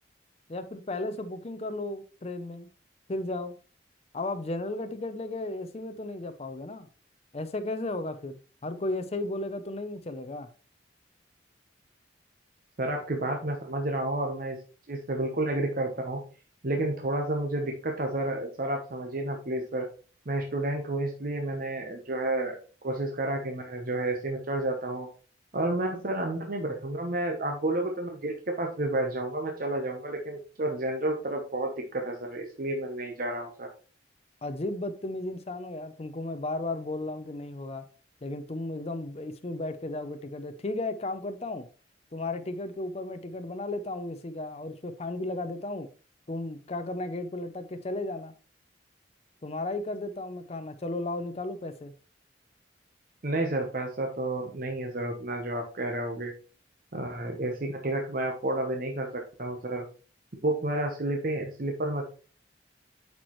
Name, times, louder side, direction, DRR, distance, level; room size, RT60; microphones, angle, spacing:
voice 1, 0.5-2.7 3.1-3.5 4.1-6.9 7.3-10.5 34.4-37.9 38.2-41.7 42.1-45.9 46.3-48.3 49.4-51.9, left 2 dB, 35° left, 0.5 m, -34 dB
voice 2, 12.8-14.6 14.9-16.2 16.6-19.8 20.3-22.6 22.8-25.1 25.5-33.7 53.2-56.3 56.9-59.8 60.3-62.0, right 1 dB, 45° right, 0.9 m, -30 dB
8.3 x 4.7 x 3.0 m
head